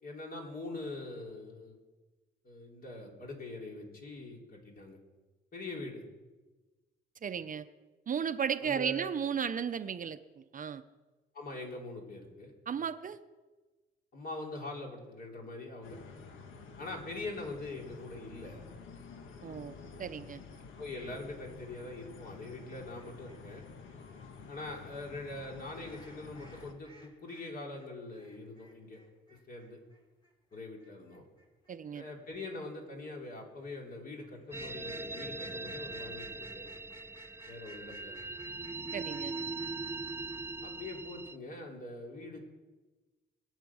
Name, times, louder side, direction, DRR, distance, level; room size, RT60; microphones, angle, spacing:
voice 1, 0.0-1.8 2.4-5.0 5.5-6.0 8.6-9.1 11.3-12.5 14.1-16.0 16.8-18.6 20.8-23.6 24.5-29.0 29.3-29.8 30.5-31.3 31.9-36.7 37.5-38.1 40.6-42.4, left 2 dB, 50° left, 0 dB, 4.0 m, -43 dB
voice 2, 7.2-7.7 8.1-10.8 12.7-13.2 19.4-20.4 31.7-32.0 38.9-39.3, right 7 dB, 40° right, 11 dB, 0.7 m, -35 dB
sound 1, 15.8-26.7, left 5 dB, 80° left, 1.6 m, -50 dB
sound 2, 21.5-27.5 27.7-40.6, equal, 20° left, 3.6 m, -57 dB
sound 3, 34.5-41.4, right 3 dB, 10° right, 0.4 m, -41 dB
22.5 x 8.2 x 6.3 m, 1.2 s
cardioid pair, 90°, 20 cm